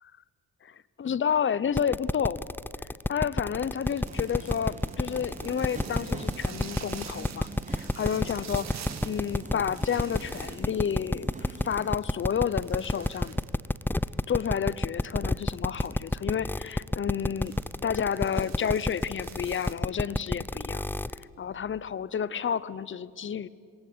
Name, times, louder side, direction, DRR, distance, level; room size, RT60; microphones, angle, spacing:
voice 1, 0.6-2.4 3.1-8.7 9.0-13.4 14.3-17.5 17.8-20.8 21.2-23.5, left 8 dB, 40° left, 19 dB, 0.9 m, -30 dB
sound 1, 1.8-21.2, left 1 dB, 5° left, 0.6 m, -29 dB
sound 2, 3.6-19.7, right 8 dB, 60° right, 2.0 m, -48 dB
Subway metro underground, 4.1-12.0, right 3 dB, 25° right, 1.7 m, -44 dB
27.0 x 21.5 x 8.6 m, 2.4 s
cardioid pair, 90°, 30 cm